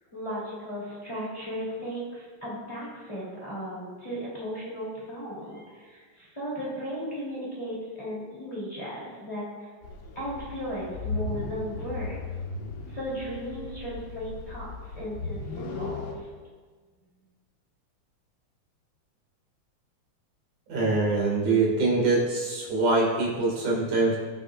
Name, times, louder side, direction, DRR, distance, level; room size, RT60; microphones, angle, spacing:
voice 1, 0.1-9.7 10.1-12.3 12.9-16.3, equal, 10° left, -8 dB, 2.9 m, -36 dB
sound 1, 9.8-16.1, left 3 dB, 70° left, 1.1 m, -36 dB
voice 2, 20.7-24.2, right 3 dB, 70° right, -4 dB, 3.6 m, -24 dB
18.5 x 6.4 x 2.5 m, 1.5 s
omnidirectional pair, 3.6 m